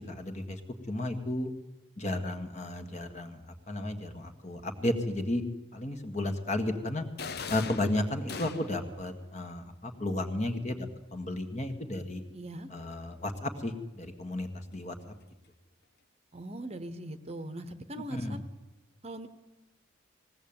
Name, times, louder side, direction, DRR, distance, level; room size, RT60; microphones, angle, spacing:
voice 1, 0.1-0.6 0.9-1.5 2.0-3.4 3.7-5.4 5.7-7.0 7.5-10.8 11.1-12.2 12.7-15.1 18.1-18.4, left 1 dB, 35° left, 6 dB, 1.8 m, -33 dB
sound 1, 7.2-8.9, left 5 dB, 50° left, 0.8 m, -39 dB
voice 2, 12.3-12.7 16.3-18.4 19.0-19.3, right 1 dB, 30° right, 10 dB, 1.0 m, -40 dB
20.0 x 16.5 x 8.9 m, 1.0 s
head